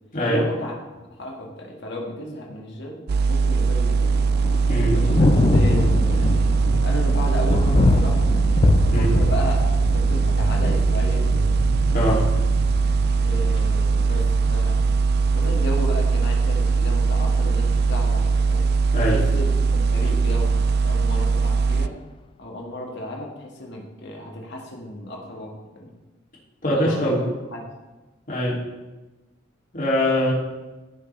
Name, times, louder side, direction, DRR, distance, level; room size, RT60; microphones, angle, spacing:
voice 1, 0.3-0.7 1.2-3.0 3.3-4.1 4.9-6.4 6.8-8.3 8.9-11.5 13.2-14.8 15.3-18.7 19.1-21.9 22.4-25.9 26.7-27.2 27.5-27.6, left 1 dB, 60° left, -1 dB, 2.0 m, -33 dB
sound 1, 3.1-21.9, right 4 dB, 55° right, 0.3 m, -20 dB
Thunder, 4.0-21.9, left 3 dB, 25° left, 0.3 m, -26 dB
voice 2, 11.9-12.2 18.9-19.2 26.6-27.3 28.3-28.6 29.7-30.3, equal, 45° left, -5 dB, 2.8 m, -22 dB
15.0 x 6.5 x 3.4 m, 1.1 s
head